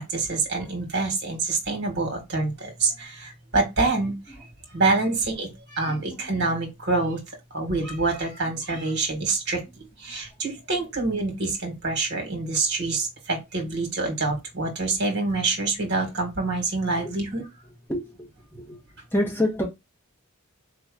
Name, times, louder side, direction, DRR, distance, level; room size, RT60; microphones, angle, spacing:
voice 1, 0.0-4.1 4.7-5.5 5.7-7.2 7.5-9.6 10.0-17.4, right 3 dB, 55° right, 1.7 m, -26 dB
voice 2, 5.9-6.3 17.0-17.1 17.9-18.8 19.1-19.6, left 1 dB, 10° left, 1.4 m, -28 dB
4.1 x 3.0 x 3.7 m
head